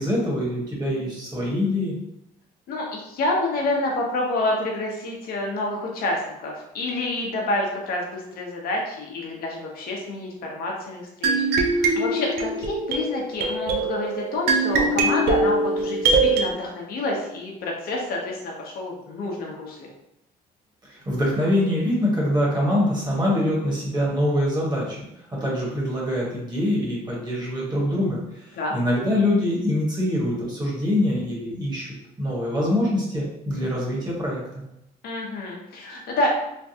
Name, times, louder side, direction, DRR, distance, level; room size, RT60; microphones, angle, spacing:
voice 1, 0.0-1.9 20.8-25.0 25.3-31.9 32.2-34.4, left 1 dB, 25° right, -4 dB, 1.2 m, -24 dB
voice 2, 2.7-19.9 28.5-28.7 35.0-36.3, left 2 dB, 65° left, -1 dB, 0.8 m, -28 dB
sound 1, 11.2-16.5, right 3 dB, 70° right, 0.5 m, -22 dB
3.3 x 2.2 x 2.7 m, 0.83 s
cardioid pair, 110°, 17 cm